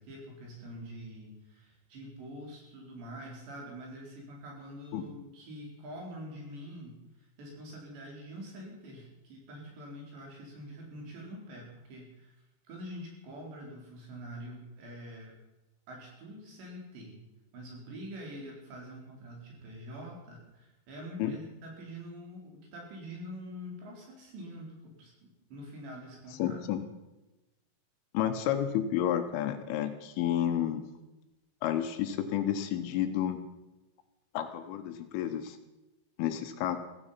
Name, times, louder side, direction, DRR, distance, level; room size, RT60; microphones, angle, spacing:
voice 1, 0.0-12.3 12.7-15.3 15.9-17.2 17.5-26.6, equal, 60° right, -1 dB, 6.3 m, -45 dB
voice 2, 26.4-26.8 28.1-30.8 31.6-33.4 34.3-35.6 36.2-36.8, left 10 dB, 80° left, 7 dB, 3.5 m, -30 dB
16.5 x 15.0 x 5.8 m, 1.0 s
omnidirectional pair, 6.0 m